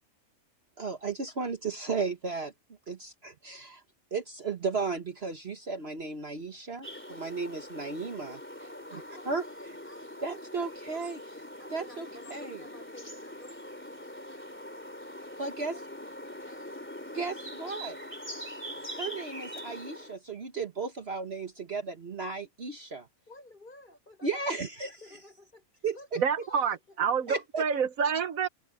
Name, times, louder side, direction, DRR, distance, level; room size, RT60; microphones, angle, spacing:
voice 1, 0.8-2.5 2.9-3.8 4.1-8.4 8.9-9.0 9.3-9.4 10.2-11.2 11.7-12.6 15.4-15.8 17.1-18.0 18.9-23.1 24.2-25.0 25.8-26.2 27.3-27.6, right 4 dB, 45° right, 1.5 m, -34 dB
sound 1, 6.8-20.2, equal, 10° left, 3.1 m, -43 dB
voice 2, 8.6-11.1 11.6-15.8 16.1-16.9 17.7-17.9 18.6-18.9 23.3-24.6 25.0-27.2, left 1 dB, 35° left, 7.2 m, -54 dB
voice 3, 26.2-28.5, right 6 dB, 70° right, 1.4 m, -28 dB
omnidirectional pair, 1.5 m